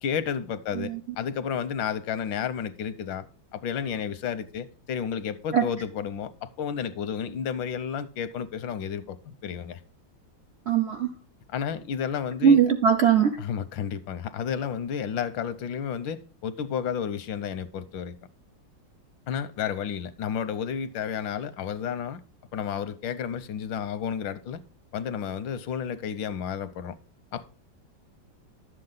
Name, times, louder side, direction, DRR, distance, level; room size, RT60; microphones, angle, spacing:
voice 1, 0.0-3.3 3.5-9.8 11.5-12.6 13.4-18.2 19.3-22.2 22.5-24.6 24.9-27.0 27.3-27.5, left 8 dB, 85° left, 1.5 m, -31 dB
voice 2, 10.7-11.1 12.4-13.4, right 7 dB, 75° right, 0.6 m, -20 dB
11.5 x 7.7 x 3.9 m
omnidirectional pair, 2.0 m